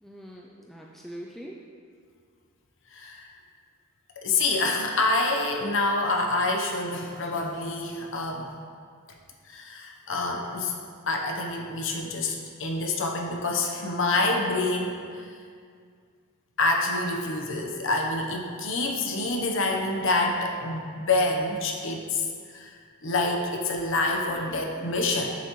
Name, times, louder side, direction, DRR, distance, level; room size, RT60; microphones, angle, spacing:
voice 1, 0.0-1.6 24.3-25.0, equal, ahead, -3 dB, 0.3 m, -43 dB
voice 2, 2.9-3.3 4.2-8.5 9.5-10.7 11.1-15.3 16.6-25.3, left 2 dB, 60° left, 1 dB, 0.9 m, -27 dB
8.4 x 7.2 x 3.1 m, 2.1 s
head